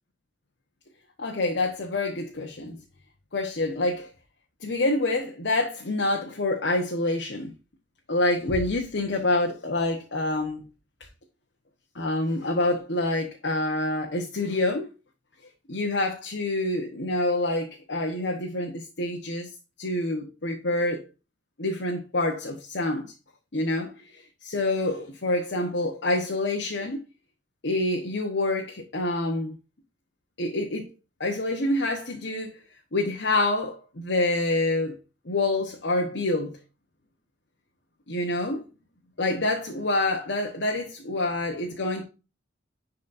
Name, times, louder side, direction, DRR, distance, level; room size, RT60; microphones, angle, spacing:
voice 1, 1.2-2.8 3.3-4.1 4.6-7.5 8.1-10.6 11.9-14.9 15.7-19.5 19.8-21.1 21.6-23.1 23.5-27.0 27.6-29.5 30.4-30.9 31.2-32.6 32.9-34.9 35.3-36.6 38.1-38.6 39.2-42.0, left 2 dB, 65° left, 1.1 m, -27 dB
11.0 x 4.2 x 2.6 m
head